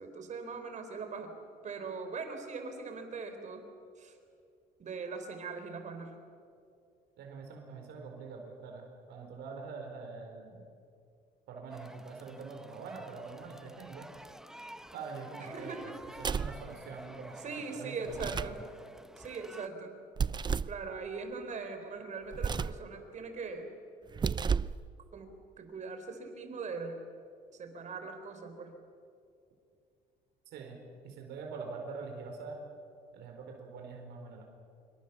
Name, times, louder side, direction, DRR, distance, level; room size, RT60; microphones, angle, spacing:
voice 1, 0.0-1.4 1.6-3.7 4.0-4.2 4.8-6.2 15.4-15.9 17.4-18.6 19.2-20.0 20.6-23.7 25.1-25.3 25.6-27.0 27.5-28.7, right 4 dB, 45° right, 6 dB, 4.2 m, -41 dB
voice 2, 7.2-10.6 11.5-14.1 14.9-15.9 16.2-18.5 30.5-30.8 31.0-32.6 33.1-34.4, right 4 dB, 80° right, 2 dB, 4.6 m, -44 dB
sound 1, 11.7-19.7, right 1 dB, 5° right, 0.9 m, -51 dB
sound 2, 16.2-16.6 18.1-18.6 20.2-20.8 22.3-22.8 24.1-24.8, right 6 dB, 25° right, 0.5 m, -32 dB
26.5 x 23.5 x 7.2 m, 2.4 s
cardioid pair, 110°, 17 cm